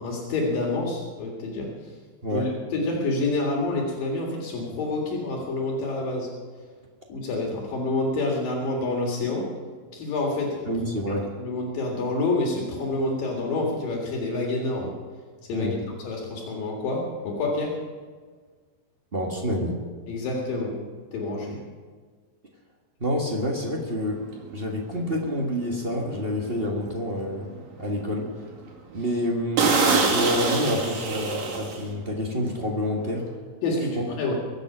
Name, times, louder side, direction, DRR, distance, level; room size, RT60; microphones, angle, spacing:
voice 1, 0.0-1.7 2.3-6.3 7.1-9.5 9.9-10.7 11.1-14.9 15.5-17.8 20.1-20.8 21.1-21.6 33.6-34.3, left 2 dB, 75° left, -1 dB, 3.7 m, -28 dB
voice 2, 10.7-11.3 15.5-15.7 19.1-19.8 23.0-24.2 24.5-27.5 27.8-28.2 28.9-33.2, equal, 40° right, 0 dB, 0.8 m, -28 dB
sound 1, 24.3-24.5 25.0-25.2 25.7-25.8 26.2-26.3 26.8-27.4 27.8-27.9 28.3-28.4 28.7-28.8 29.1-29.2 29.6-32.1 32.4-32.6, right 4 dB, 70° right, 3.9 m, -24 dB
23.5 x 8.0 x 6.1 m, 1.5 s
omnidirectional pair, 4.1 m